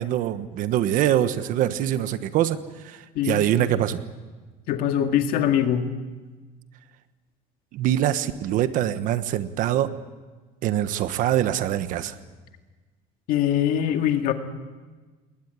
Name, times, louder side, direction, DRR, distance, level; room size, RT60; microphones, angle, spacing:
voice 1, 0.0-4.0 7.7-9.9 10.6-12.2, right 12 dB, 55° right, 12 dB, 1.3 m, -24 dB
voice 2, 3.2-3.7 4.7-5.9 13.3-14.3, left 10 dB, 60° left, 6 dB, 2.1 m, -23 dB
20.5 x 19.0 x 9.5 m, 1.3 s
cardioid pair, 150°, 16 cm